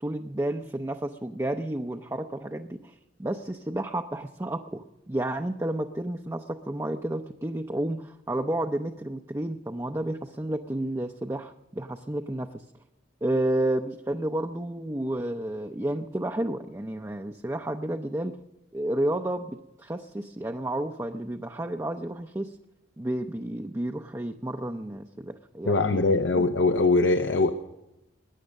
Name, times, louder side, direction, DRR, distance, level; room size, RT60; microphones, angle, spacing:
voice 1, 0.0-12.5 13.2-18.4 18.7-22.6 23.0-26.0 26.3-26.5, right 1 dB, 15° right, 4 dB, 0.5 m, -31 dB
voice 2, 25.7-27.5, left 3 dB, 75° left, 6 dB, 0.8 m, -22 dB
21.5 x 10.0 x 6.4 m, 0.95 s
head